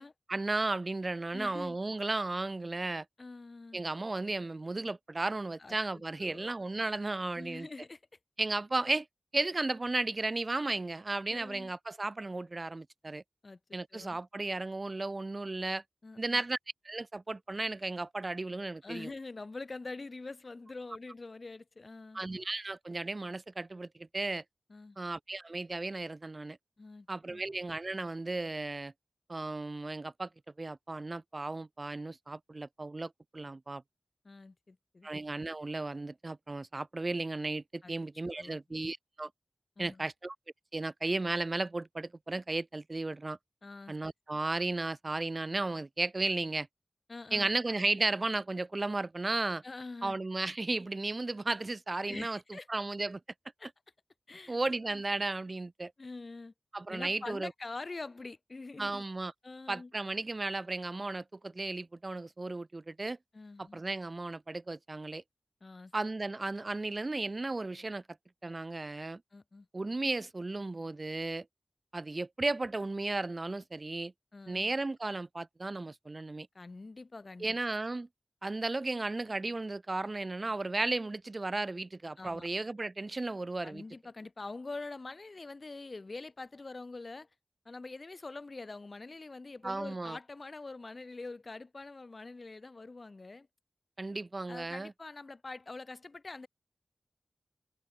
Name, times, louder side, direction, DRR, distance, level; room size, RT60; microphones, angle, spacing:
voice 1, 0.3-3.0 3.7-7.7 8.4-9.1 9.3-13.2 13.7-15.8 16.2-16.6 16.8-19.1 22.1-24.4 25.0-26.6 27.1-28.9 29.3-30.3 30.6-33.8 35.0-39.3 39.8-40.4 40.7-43.4 43.9-46.7 47.3-49.6 50.0-53.2 54.5-55.9 56.7-57.5 58.8-59.3 59.7-63.2 63.6-65.2 65.9-68.0 68.4-69.2 69.7-71.4 71.9-74.1 74.5-76.5 77.4-78.1 78.4-83.8 89.6-90.2 94.0-94.9, right 2 dB, 45° right, 1.2 m, -34 dB
voice 2, 1.3-1.8 3.2-3.8 5.6-5.7 6.2-6.5 7.4-8.0 11.3-11.7 13.4-13.6 13.9-14.2 16.0-16.4 18.8-22.2 24.7-25.0 26.8-27.4 34.2-35.1 37.8-37.9 38.3-38.6 39.8-40.1 43.6-44.0 47.1-47.5 49.6-50.2 52.1-52.7 53.6-53.7 54.3-54.6 54.9-55.0 56.0-56.5 56.9-59.0 59.4-59.9 63.3-63.8 65.6-65.9 69.3-69.7 74.3-74.6 76.5-77.6 82.2-82.5 83.6-87.3 87.6-93.5 94.5-96.5, left 3 dB, 50° left, 1.6 m, -45 dB
open air
wide cardioid pair, 55°, 0 cm